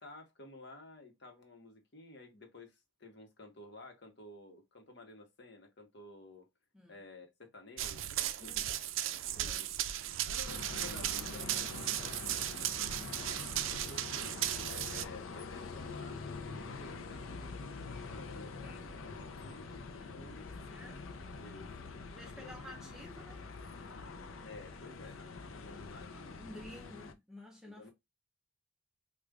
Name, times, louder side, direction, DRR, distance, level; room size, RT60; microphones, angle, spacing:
voice 1, 0.0-6.5 6.9-8.8 9.4-9.8 10.2-12.2 13.8-19.8 20.1-20.5 21.4-22.0 22.4-22.8 24.4-26.4 27.7-27.9, left 2 dB, 55° left, 1.1 m, -53 dB
Run, 7.8-15.0, right 12 dB, 70° right, 0.4 m, -36 dB
sound 1, 10.4-27.1, left 4 dB, 80° left, 0.6 m, -45 dB
voice 2, 19.9-21.0 22.1-23.4 26.4-27.9, left 1 dB, 5° right, 0.5 m, -52 dB
4.9 x 2.4 x 2.3 m
head